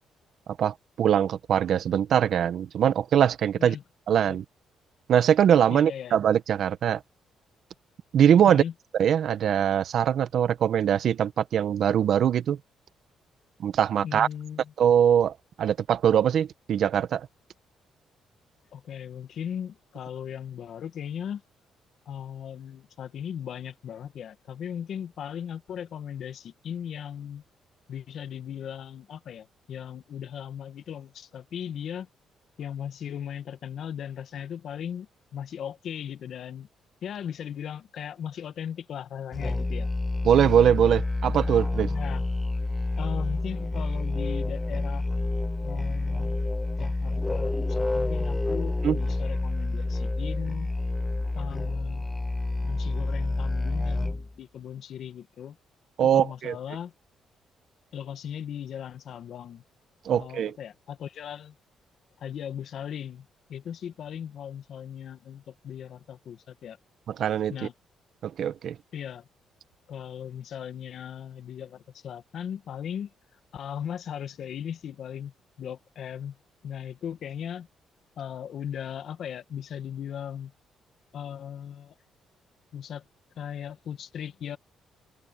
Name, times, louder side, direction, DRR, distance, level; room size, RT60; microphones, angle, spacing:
voice 1, 0.6-3.7 4.1-4.4 5.1-7.0 8.1-8.6 9.0-12.6 13.6-14.3 14.8-17.3 40.2-41.9 48.8-49.0 56.0-56.5 60.0-60.5 67.1-67.6 68.2-68.7, right 9 dB, 65° right, 1.4 m, -22 dB
voice 2, 5.7-6.2 8.5-8.7 14.0-14.7 18.7-21.4 22.0-27.4 27.9-32.1 32.6-35.1 35.3-36.7 37.0-39.9 41.9-42.3 43.0-45.0 45.6-46.5 46.8-50.7 51.3-52.3 52.6-55.6 56.0-56.9 57.9-59.6 60.1-61.5 62.2-66.8 67.5-67.7 68.9-69.3 69.9-73.1 73.5-76.4 76.6-77.7 78.2-80.5 81.1-81.9 82.7-83.0 83.4-84.6, left 9 dB, 65° left, 1.6 m, -37 dB
Musical instrument, 39.3-54.3, left 2 dB, 15° left, 0.5 m, -28 dB
open air
cardioid pair, 90°, 0 cm